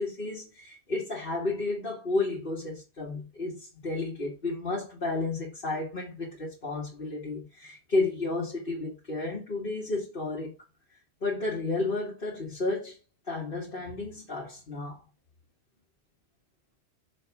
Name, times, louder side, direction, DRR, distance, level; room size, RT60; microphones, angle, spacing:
voice 1, 0.0-10.5 11.2-13.0 13.3-15.0, left 2 dB, 55° left, 1.9 m, -32 dB
6.4 x 3.5 x 5.8 m
omnidirectional pair, 1.1 m